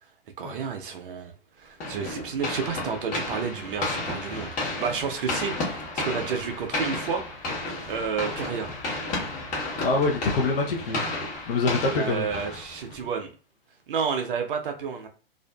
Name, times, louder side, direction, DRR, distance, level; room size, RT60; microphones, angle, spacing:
voice 1, 0.4-1.3 1.6-7.4 7.9-8.7 11.9-13.3 13.9-15.1, right 6 dB, 65° right, 5 dB, 0.6 m, -31 dB
sound 1, 1.8-13.1, left 2 dB, 25° left, 1.0 m, -32 dB
voice 2, 9.8-11.0 11.5-12.2, left 3 dB, 70° left, 0 dB, 0.7 m, -25 dB
2.5 x 2.4 x 2.2 m, 0.38 s
hypercardioid pair, 125°, 30 cm